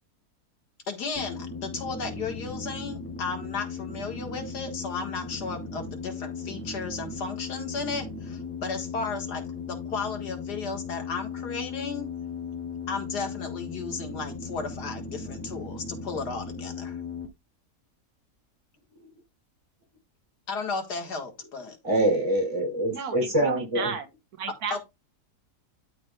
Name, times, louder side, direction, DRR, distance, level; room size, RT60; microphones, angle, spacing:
voice 1, 0.9-9.4 9.7-12.1 12.9-17.0 20.5-21.8 24.7-24.8, left 4 dB, 90° left, 2.2 m, -34 dB
sound 1, 1.2-17.3, left 5 dB, 10° left, 1.7 m, -37 dB
voice 2, 21.8-24.0, right 1 dB, 20° right, 3.2 m, -25 dB
voice 3, 22.9-24.1 24.4-24.8, right 6 dB, 70° right, 1.5 m, -34 dB
12.5 x 5.1 x 2.3 m
omnidirectional pair, 1.7 m